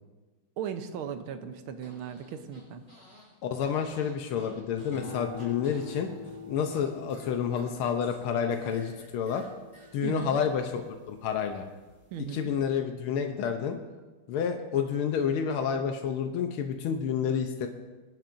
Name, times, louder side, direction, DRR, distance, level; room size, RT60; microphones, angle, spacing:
voice 1, 0.6-2.8 10.0-10.4 12.1-12.5, right 8 dB, 80° right, 8 dB, 1.7 m, -37 dB
Fart, 1.8-3.3 3.6-6.8 7.1-9.9, equal, 20° right, 5.2 m, -53 dB
voice 2, 3.4-6.1 6.5-9.4 9.9-10.8 11.1-11.6 12.3-13.8 14.3-17.7, left 7 dB, 85° left, 5 dB, 1.7 m, -29 dB
sound 1, 4.9-11.4 11.9-12.4, left 4 dB, 25° left, 2.1 m, -46 dB
24.5 x 10.5 x 2.6 m, 1.3 s
omnidirectional pair, 2.3 m